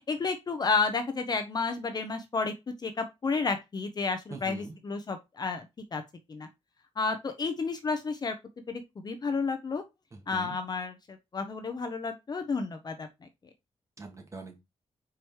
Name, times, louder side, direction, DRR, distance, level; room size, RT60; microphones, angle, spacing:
voice 1, 0.1-2.5 2.8-5.7 5.9-6.0 6.3-6.5 7.0-8.4 8.7-9.8 10.3-13.1, left 4 dB, 35° left, 0.9 m, -31 dB
voice 2, 4.3-4.8 10.1-10.6 14.0-14.6, right 3 dB, 25° right, 2.0 m, -43 dB
5.0 x 4.8 x 4.7 m
wide cardioid pair, 160°, 12 cm